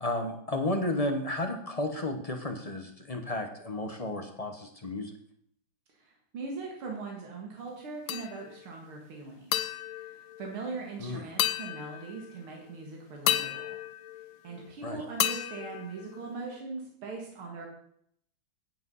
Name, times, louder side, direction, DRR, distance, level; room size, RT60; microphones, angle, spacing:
voice 1, 0.0-5.1 11.0-11.2 14.8-15.0, left 1 dB, 40° left, 4 dB, 0.5 m, -32 dB
voice 2, 6.0-13.8 14.4-17.7, right 4 dB, 80° right, 0 dB, 2.7 m, -41 dB
sound 1, 8.1-8.7 9.5-10.9 11.4-12.4 13.3-14.7 15.2-16.6, left 12 dB, 85° left, 1.6 m, -33 dB
9.3 x 8.0 x 5.5 m, 0.68 s
omnidirectional pair, 2.3 m